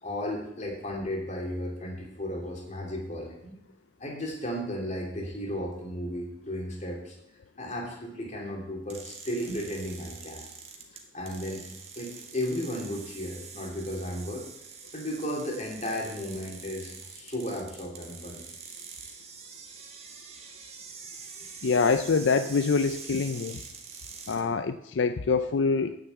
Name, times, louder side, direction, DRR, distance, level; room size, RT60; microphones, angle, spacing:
voice 1, 0.0-3.5 4.0-7.1 7.6-10.4 11.1-11.6 11.9-14.5 14.9-18.4 21.4-21.5, equal, 40° left, 0 dB, 2.8 m, -34 dB
sound 1, 8.9-24.4, right 5 dB, 35° right, 1.7 m, -45 dB
voice 2, 21.6-23.6 24.3-26.0, left 4 dB, 80° left, 10 dB, 0.5 m, -25 dB
9.4 x 6.8 x 8.1 m, 0.77 s
head